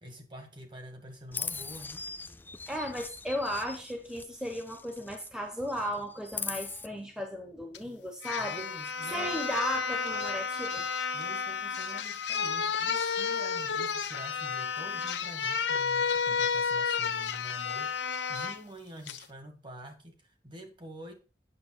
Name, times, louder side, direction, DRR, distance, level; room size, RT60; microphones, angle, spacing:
voice 1, 0.0-2.1 8.4-10.3 11.1-21.1, equal, 25° right, 1.9 m, -47 dB
Chirp tweet, 1.3-5.3 5.6-6.9, left 4 dB, 10° left, 0.4 m, -41 dB
voice 2, 2.7-8.6 9.1-10.9, equal, 5° right, 1.0 m, -35 dB
sound 1, 7.7-7.8 8.2-18.6 19.1-19.2, left 6 dB, 85° left, 0.9 m, -31 dB
8.7 x 6.8 x 4.8 m
head